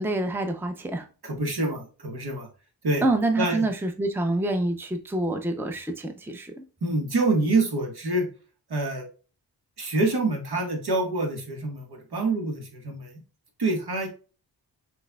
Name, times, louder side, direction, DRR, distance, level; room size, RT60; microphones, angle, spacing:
voice 1, 0.0-1.1 3.0-6.6, right 2 dB, 5° right, 0.6 m, -27 dB
voice 2, 1.2-2.5 2.8-3.0 3.4-3.6 6.8-8.3 8.7-9.0 9.8-13.2 13.6-14.1, right 2 dB, 65° right, 1.6 m, -26 dB
6.1 x 3.3 x 2.3 m
wide cardioid pair, 75°, 42 cm